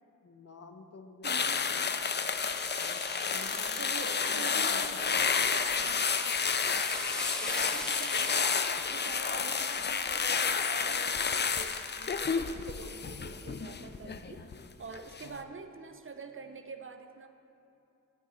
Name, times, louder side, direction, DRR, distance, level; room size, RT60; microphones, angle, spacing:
voice 1, 0.2-2.0 2.8-5.3 7.5-7.9 15.2-15.5, left 3 dB, 50° left, 6 dB, 0.8 m, -51 dB
sound 1, 1.2-14.6 14.9-15.3, left 5 dB, 35° left, 0.4 m, -30 dB
voice 2, 1.2-1.6 3.8-6.4 6.7-6.8 7.5-17.3, right 4 dB, 40° right, 7 dB, 0.6 m, -46 dB
sound 2, 2.4-8.5, equal, ahead, 0.7 m, -42 dB
10.5 x 6.4 x 4.3 m, 2.8 s
cardioid pair, 60°, 32 cm